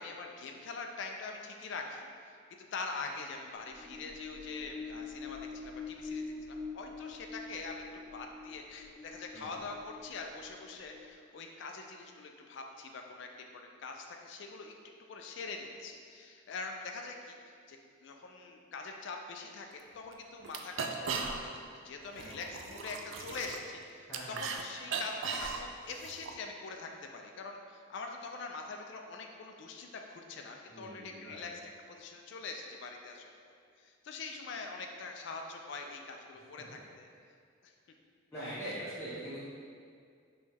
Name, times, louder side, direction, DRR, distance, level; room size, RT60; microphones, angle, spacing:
voice 1, 0.0-2.4 2.7-14.7 15.1-31.6 31.9-33.5 33.8-37.1 37.6-37.7, left 4 dB, 55° left, 3 dB, 0.3 m, -44 dB
sound 1, 3.6-11.2, left 4 dB, 45° right, 1.0 m, -45 dB
sound 2, 19.7-19.8 20.1-20.2 20.4-21.7 22.0-24.6 24.9-26.3, right 5 dB, 65° right, 0.3 m, -38 dB
voice 2, 24.1-24.4 30.7-31.5 38.3-39.5, right 1 dB, 10° left, -13 dB, 0.6 m, -42 dB
5.2 x 2.3 x 3.3 m, 2.2 s
head